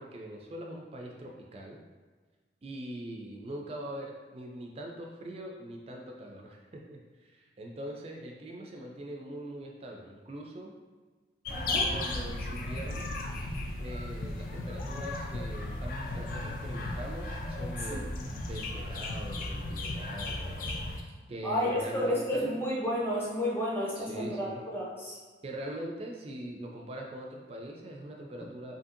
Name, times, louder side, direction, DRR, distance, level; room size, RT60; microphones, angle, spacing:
voice 1, 0.0-1.8 2.6-10.7 11.9-13.1 13.8-20.6 21.3-22.5 23.9-24.6 25.4-28.7, right 1 dB, 35° right, 0 dB, 0.3 m, -42 dB
sound 1, 11.4-21.0, left 2 dB, 50° left, 0.3 m, -35 dB
voice 2, 11.5-11.9 17.9-18.0 21.4-25.1, equal, 10° left, -6 dB, 0.6 m, -31 dB
2.7 x 2.6 x 2.5 m, 1.4 s
head